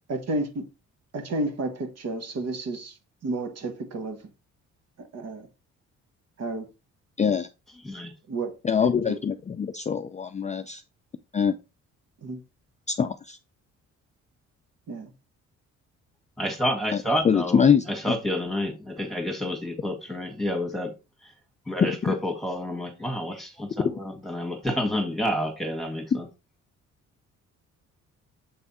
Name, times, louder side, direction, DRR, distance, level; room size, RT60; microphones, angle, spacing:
voice 1, 0.1-0.6 1.1-3.0 3.2-4.2 5.0-5.5 6.4-6.7 8.3-8.5 8.8-9.2 12.2-12.4 14.9-15.1, right 2 dB, 55° right, 1.4 m, -31 dB
voice 2, 7.2-7.5 8.6-10.8 11.3-11.5 12.9-13.4 17.2-17.8 21.8-22.1 23.8-23.9, left 7 dB, 25° left, 0.4 m, -23 dB
voice 3, 16.4-20.9 21.2-21.3 21.7-26.3, left 1 dB, ahead, 1.8 m, -29 dB
7.3 x 3.4 x 4.2 m
cardioid pair, 90°, 30 cm